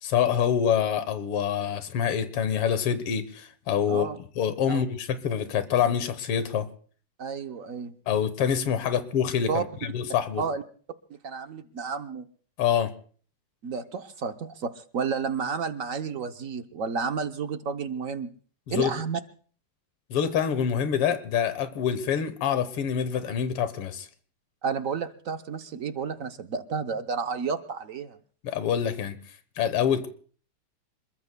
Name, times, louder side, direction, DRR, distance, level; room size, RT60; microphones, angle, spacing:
voice 1, 0.0-4.1 4.4-6.7 8.1-10.4 12.6-12.9 18.7-18.9 20.1-24.1 28.4-29.2 29.6-30.1, left 8 dB, 90° left, 11 dB, 2.0 m, -26 dB
voice 2, 7.2-7.9 9.5-9.6 10.4-10.6 11.2-12.2 13.6-18.3 18.7-19.2 24.6-28.2, right 5 dB, 60° right, 7 dB, 0.8 m, -31 dB
27.0 x 22.0 x 2.2 m, 0.44 s
omnidirectional pair, 2.4 m